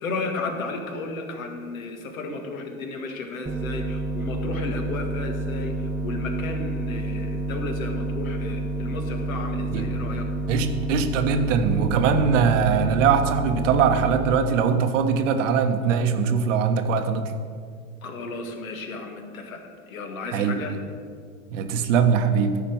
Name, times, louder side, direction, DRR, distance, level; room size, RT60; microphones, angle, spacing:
voice 1, 0.0-10.3 18.0-19.6 19.9-20.7, left 3 dB, 75° left, 4 dB, 1.8 m, -33 dB
sound 1, 3.5-14.4, right 2 dB, 5° right, 0.4 m, -29 dB
voice 2, 10.5-17.4 20.3-20.6 21.5-22.6, right 6 dB, 60° right, 7 dB, 1.2 m, -21 dB
13.5 x 5.1 x 7.0 m, 2.1 s
hypercardioid pair, 95°, 41 cm